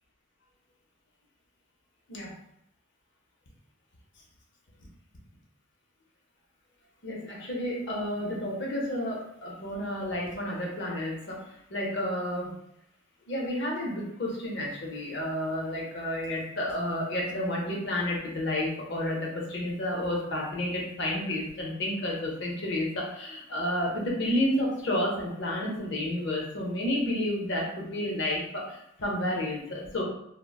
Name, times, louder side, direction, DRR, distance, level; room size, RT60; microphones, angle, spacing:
voice 1, 7.0-11.4 11.7-12.5 13.3-30.0, left 1 dB, 55° left, -2 dB, 0.6 m, -31 dB
3.7 x 2.0 x 2.3 m, 0.77 s
head